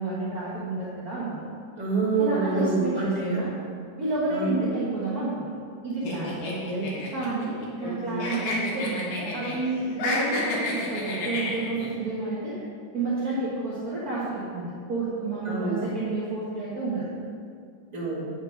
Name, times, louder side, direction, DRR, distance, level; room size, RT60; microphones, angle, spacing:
voice 1, 0.0-1.4 2.2-3.5 4.0-5.5 5.8-6.4 7.1-12.5 12.9-17.1, right 2 dB, 50° right, -9 dB, 1.0 m, -30 dB
voice 2, 1.8-3.5 4.3-4.7 6.4-6.9 7.8-8.3 15.4-15.9 17.9-18.3, right 3 dB, 15° right, -8 dB, 1.6 m, -27 dB
sound 1, 6.0-7.9 8.2-9.6 9.9-11.9, left 2 dB, 65° left, 2.8 m, -30 dB
8.8 x 6.4 x 5.1 m, 2.2 s
omnidirectional pair, 3.9 m